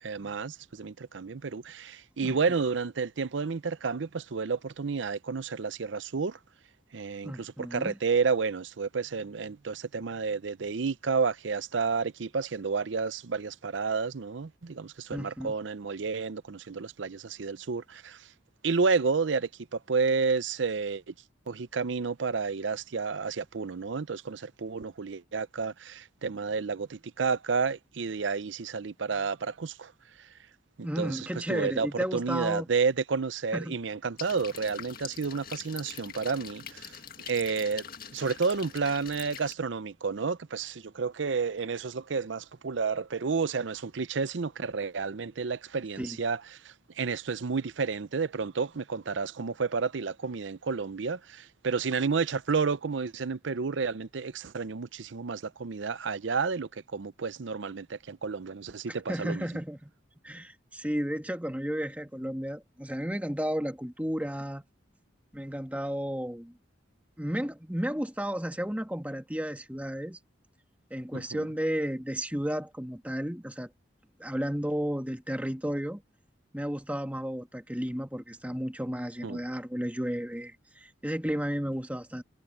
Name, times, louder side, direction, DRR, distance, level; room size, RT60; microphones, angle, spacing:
voice 1, 0.0-6.4 6.9-18.3 18.6-21.1 21.5-29.9 30.8-31.2 31.5-37.0 37.3-37.8 38.1-59.4 71.1-71.5 79.2-79.4, right 5 dB, 80° right, 0.6 m, -31 dB
voice 2, 7.2-7.9 15.1-15.5 30.8-32.7 33.5-33.8 46.0-46.2 58.9-59.9 60.2-64.6 65.3-66.5 67.2-70.2 70.9-73.7 74.2-76.0 76.5-82.2, equal, 10° right, 1.7 m, -33 dB
sound 1, 34.2-39.5, left 8 dB, 50° left, 1.9 m, -44 dB
head